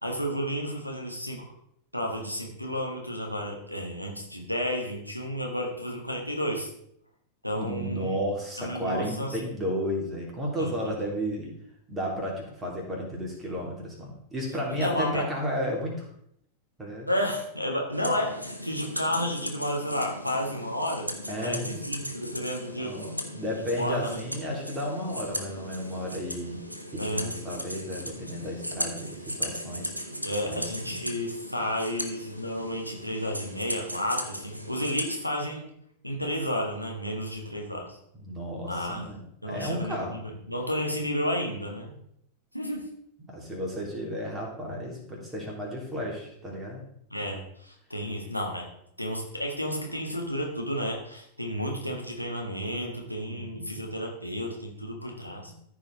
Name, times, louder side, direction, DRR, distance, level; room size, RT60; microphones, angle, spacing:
voice 1, 0.0-1.4 1.9-6.7 7.4-8.2 8.6-9.5 10.6-11.1 14.7-15.2 17.1-21.1 21.4-23.0 23.8-24.2 27.0-27.3 30.2-35.7 36.0-38.0 38.6-39.1 39.4-41.9 42.5-42.9 47.1-48.7 49.0-55.5, equal, 90° left, 0 dB, 1.6 m, -32 dB
voice 2, 7.5-11.5 11.9-16.1 16.8-17.1 21.3-21.8 22.8-26.6 26.9-29.9 30.4-31.0 38.2-40.2 43.3-46.8 53.3-53.9 55.4-55.5, equal, 15° right, -2 dB, 3.3 m, -33 dB
sound 1, 17.9-35.2, equal, 90° right, 1.0 m, -37 dB
14.0 x 4.9 x 4.0 m, 0.72 s
figure-of-eight pair, 90°, 0 cm